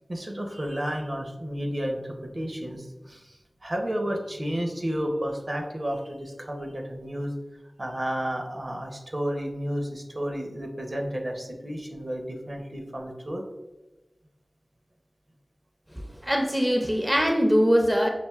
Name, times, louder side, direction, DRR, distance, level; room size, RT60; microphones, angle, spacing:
voice 1, 0.1-7.3 7.8-13.4, equal, 50° right, 2 dB, 0.6 m, -32 dB
voice 2, 16.2-18.1, equal, 5° right, 2 dB, 0.5 m, -22 dB
5.7 x 2.5 x 2.3 m, 1.1 s
wide cardioid pair, 45°, 0 cm